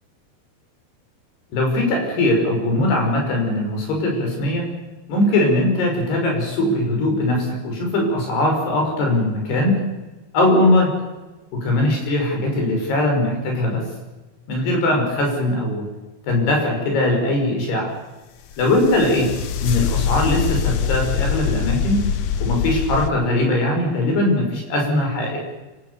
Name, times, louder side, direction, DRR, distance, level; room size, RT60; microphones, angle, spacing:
voice 1, 1.5-4.7 5.1-9.8 10.3-10.9 11.5-13.8 14.5-15.9 16.2-17.9 18.6-19.3 19.6-22.0 22.4-25.4, left 1 dB, 85° left, 1 dB, 8.1 m, -20 dB
sound 1, 18.5-23.1, left 7 dB, 70° left, 1.6 m, -23 dB
27.5 x 18.0 x 7.2 m, 1.2 s
omnidirectional pair, 4.6 m